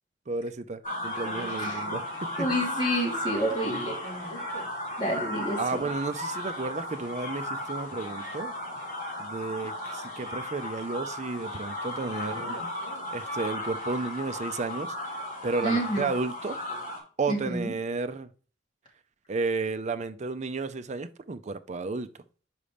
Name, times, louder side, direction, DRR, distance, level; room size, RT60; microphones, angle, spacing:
voice 1, 0.3-2.5 5.6-8.5 9.2-12.7 13.1-14.9 15.4-16.6 17.2-18.3 19.3-22.1, right 3 dB, 40° right, 0.5 m, -32 dB
sound 1, 0.8-17.0, left 1 dB, 45° left, 3.6 m, -35 dB
voice 2, 2.4-4.3 5.0-5.8 15.6-16.1 17.3-17.7, equal, 25° left, 2.9 m, -29 dB
5.5 x 5.0 x 5.0 m
head